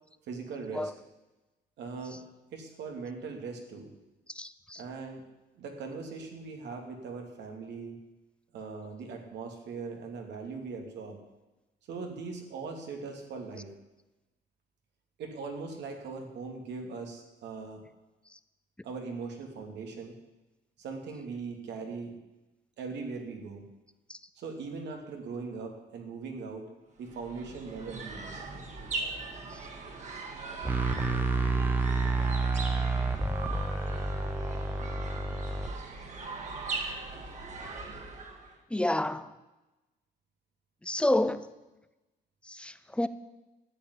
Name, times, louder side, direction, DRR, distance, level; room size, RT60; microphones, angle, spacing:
voice 1, 0.3-0.9 1.8-2.2 2.5-3.9 4.8-5.2 5.5-8.0 8.5-11.2 11.9-13.7 15.2-17.9 18.8-20.2 20.8-22.2 22.8-23.6 24.3-26.7 27.0-28.4, right 4 dB, 75° right, 3 dB, 3.0 m, -40 dB
voice 2, 4.4-4.8 24.1-24.2 38.7-39.3 40.8-41.5 42.5-43.1, left 1 dB, 5° left, 13 dB, 0.6 m, -29 dB
sound 1, 27.0-38.6, right 3 dB, 40° right, 2.6 m, -40 dB
sound 2, 30.6-35.7, right 3 dB, 10° right, 1.0 m, -29 dB
13.0 x 8.4 x 9.9 m, 1.1 s
cardioid pair, 135°, 18 cm